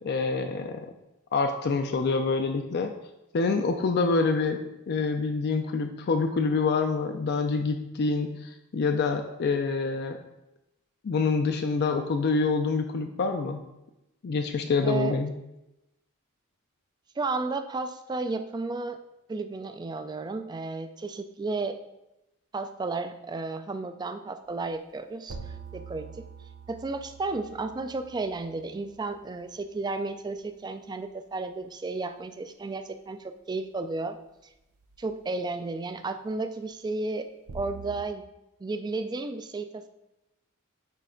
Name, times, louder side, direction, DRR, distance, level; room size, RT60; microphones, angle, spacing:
voice 1, 0.0-0.9 1.3-2.9 3.3-4.6 4.9-10.2 11.0-13.6 14.2-15.3, left 4 dB, 50° left, 6 dB, 0.4 m, -26 dB
voice 2, 14.8-15.2 17.2-19.0 19.3-21.8 22.5-25.4 25.7-26.2 26.7-34.2 35.0-37.3 37.5-38.2 38.6-39.9, right 3 dB, 20° right, 9 dB, 0.3 m, -33 dB
sound 1, 24.5-24.6 25.3-29.7 34.8-35.1 37.5-38.0, right 5 dB, 80° right, 0.6 m, -45 dB
9.0 x 3.3 x 3.8 m, 0.93 s
head